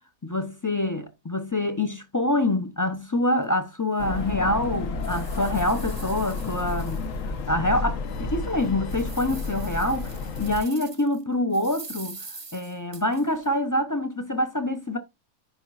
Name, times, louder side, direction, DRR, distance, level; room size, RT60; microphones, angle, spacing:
voice 1, 0.2-7.0 7.5-12.3 12.5-15.0, left 1 dB, 25° left, 0.4 m, -26 dB
sound 1, 3.4-3.5 4.0-4.1 4.6-7.5 7.9-8.0 8.5-11.2 11.5-13.5, right 3 dB, 25° right, 0.7 m, -44 dB
sound 2, 4.0-10.6, left 3 dB, 65° left, 1.2 m, -31 dB
9.9 x 5.5 x 2.4 m
omnidirectional pair, 1.5 m